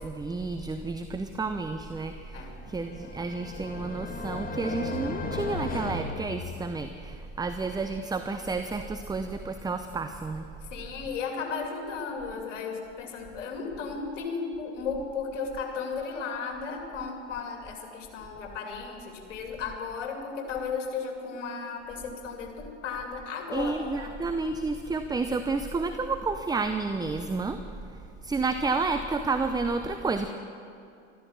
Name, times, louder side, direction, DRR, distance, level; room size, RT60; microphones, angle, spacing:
voice 1, 0.0-10.5 23.5-27.6 27.9-30.3, right 3 dB, 10° right, 8 dB, 0.7 m, -31 dB
sound 1, 2.6-7.0, left 3 dB, 25° left, 1.7 m, -36 dB
voice 2, 10.7-24.1, left 5 dB, 75° left, 2 dB, 2.8 m, -35 dB
14.0 x 13.0 x 7.2 m, 2.5 s
hypercardioid pair, 80°, 37 cm